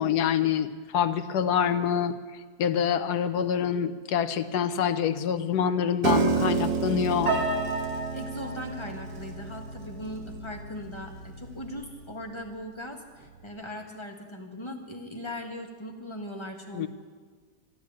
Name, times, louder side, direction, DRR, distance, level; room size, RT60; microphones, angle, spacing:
voice 1, 0.0-2.2 2.6-7.3 16.7-16.9, left 8 dB, 70° left, 11 dB, 1.2 m, -26 dB
Piano, 6.0-12.2, right 4 dB, 65° right, 1.8 m, -30 dB
voice 2, 7.9-16.9, left 1 dB, 15° left, 2 dB, 1.4 m, -39 dB
12.5 x 11.5 x 8.5 m, 1.5 s
omnidirectional pair, 1.8 m